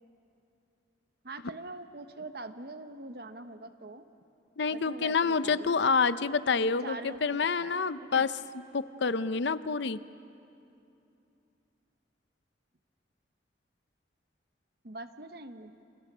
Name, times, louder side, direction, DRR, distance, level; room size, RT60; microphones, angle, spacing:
voice 1, 1.2-4.0 4.7-5.8 6.6-7.7 8.0-8.3 14.8-15.7, right 2 dB, 55° right, 9 dB, 1.1 m, -43 dB
voice 2, 4.6-8.3 8.7-10.0, left 5 dB, 70° left, 14 dB, 0.7 m, -28 dB
29.0 x 28.0 x 6.2 m, 2.8 s
head